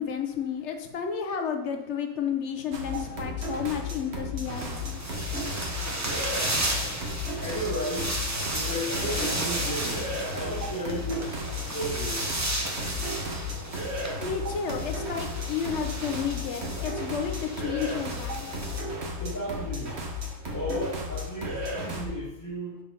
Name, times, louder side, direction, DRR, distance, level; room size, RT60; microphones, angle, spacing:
voice 1, 0.0-5.0 14.2-18.5, left 7 dB, 60° left, 5 dB, 1.1 m, -32 dB
sound 1, 2.7-22.1, left 2 dB, 50° right, 1.4 m, -34 dB
sound 2, 4.4-18.8, right 1 dB, 15° right, 0.6 m, -34 dB
voice 2, 7.4-8.2 8.5-10.0 10.3-12.3 19.2-20.0 20.5-22.8, equal, 15° left, -8 dB, 1.3 m, -34 dB
5.3 x 5.0 x 5.5 m, 0.94 s
omnidirectional pair, 1.5 m